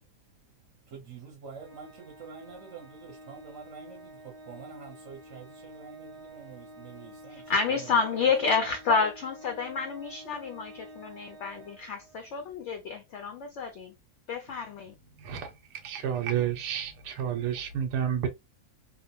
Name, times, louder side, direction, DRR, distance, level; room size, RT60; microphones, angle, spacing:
voice 1, 0.0-8.3, right 6 dB, 55° right, 1.0 m, -47 dB
Organ, 1.6-12.4, right 1 dB, 25° right, 0.9 m, -49 dB
voice 2, 7.5-13.9 14.3-14.9, left 5 dB, 75° left, 0.6 m, -29 dB
voice 3, 15.2-18.3, right 9 dB, 90° right, 1.2 m, -30 dB
2.8 x 2.1 x 2.6 m
omnidirectional pair, 1.7 m